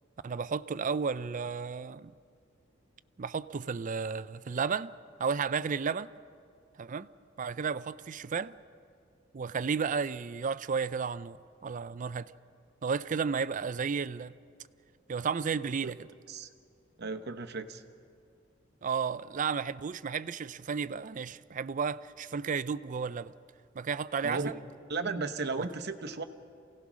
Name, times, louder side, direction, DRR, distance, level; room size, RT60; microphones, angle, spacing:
voice 1, 0.2-2.1 3.2-4.9 5.2-6.1 6.8-7.1 7.4-8.6 9.3-11.4 11.6-12.3 12.8-14.3 15.1-16.1 18.8-23.3 23.7-24.6, right 5 dB, 40° right, 0.4 m, -33 dB
voice 2, 17.0-17.8 24.2-24.5 24.9-26.2, right 3 dB, 55° right, 1.0 m, -34 dB
28.0 x 17.0 x 6.2 m
head